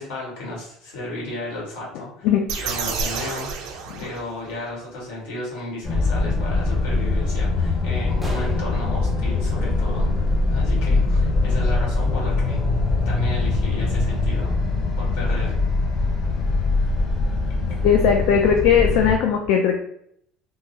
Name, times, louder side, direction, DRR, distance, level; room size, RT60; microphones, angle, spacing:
voice 1, 0.0-2.3 2.5-12.6 13.0-14.5 15.0-15.6 17.7-17.8, left 1 dB, 90° left, -4 dB, 1.5 m, -34 dB
sound 1, 2.5-4.6, right 5 dB, 65° right, 0.5 m, -30 dB
sound 2, 5.8-19.2, left 3 dB, 35° left, 0.8 m, -22 dB
sound 3, 8.2-10.8, right 1 dB, 5° right, 0.4 m, -41 dB
voice 2, 17.8-19.8, left 7 dB, 70° left, 2 dB, 0.3 m, -18 dB
3.7 x 2.0 x 2.7 m, 0.70 s
cardioid pair, 160°, 0 cm